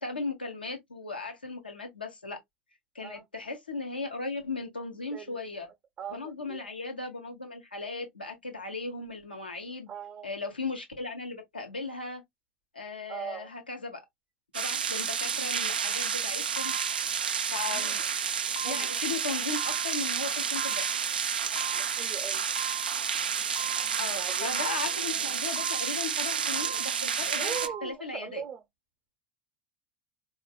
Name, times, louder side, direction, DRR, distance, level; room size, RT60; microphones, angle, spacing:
voice 1, 0.0-2.4 2.9-5.7 6.1-9.9 10.2-12.2 12.7-14.0 14.5-16.7 17.5-18.0 18.6-20.9 24.0-28.4, left 3 dB, 85° left, 0.9 m, -37 dB
voice 2, 6.0-6.6 9.9-10.3 13.1-13.5 17.7-18.0 18.6-18.9 21.7-22.4 24.1-24.7 27.4-28.6, right 8 dB, 35° right, 0.6 m, -40 dB
sound 1, 14.5-27.7, right 7 dB, 80° right, 0.3 m, -30 dB
sound 2, 15.9-16.1 16.6-17.1 17.6-18.1 18.6-19.1 19.6-20.1 20.6-21.1 21.6-22.1 22.6-23.1 23.6-24.1 24.6-25.1 25.6-26.1 26.6-27.1 27.6-27.9, right 5 dB, 50° left, 0.8 m, -41 dB
4.0 x 2.4 x 2.3 m
figure-of-eight pair, 80°, 5 cm